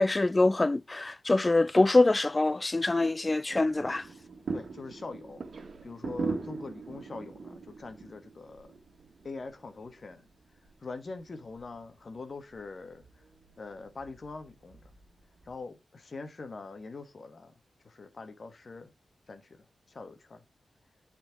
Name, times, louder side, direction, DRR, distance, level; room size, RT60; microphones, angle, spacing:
voice 1, 0.0-4.1, left 2 dB, 35° left, 0.3 m, -24 dB
sound 1, 3.5-15.6, right 4 dB, 75° right, 1.6 m, -42 dB
voice 2, 4.5-5.4 5.8-8.8 9.2-10.3 10.8-13.2 13.6-14.9 15.4-17.5 17.8-18.9 19.3-20.4, left 3 dB, 60° left, 1.3 m, -43 dB
9.1 x 4.5 x 3.5 m
cardioid pair, 50°, 0 cm